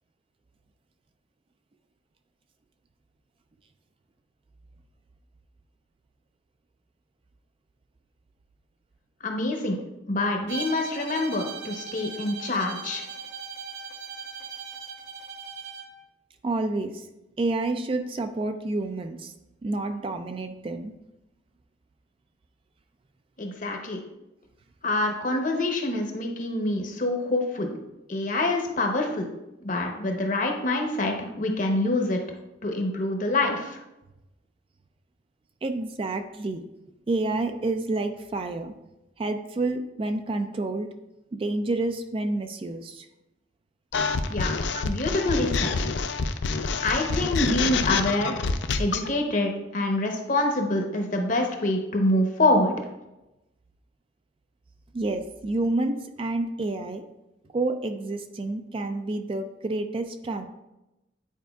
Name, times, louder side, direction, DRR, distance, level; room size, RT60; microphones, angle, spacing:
voice 1, 9.2-9.8 10.1-13.0 23.4-24.0 24.8-27.7 28.1-29.3 29.6-32.2 32.6-33.8 44.3-45.7 46.8-48.4 48.8-52.7, left 2 dB, 45° left, 2 dB, 0.9 m, -26 dB
Bowed string instrument, 10.5-16.0, right 5 dB, 75° right, 0.8 m, -39 dB
voice 2, 16.4-17.1 17.4-19.3 19.6-20.9 35.6-36.6 37.1-38.7 39.2-40.9 41.3-43.1 44.7-44.8 54.9-57.1 57.5-60.5, right 2 dB, 30° right, 7 dB, 0.3 m, -29 dB
sound 1, 43.9-49.1, left 4 dB, 65° left, 0.4 m, -27 dB
9.2 x 4.6 x 2.3 m, 0.96 s
head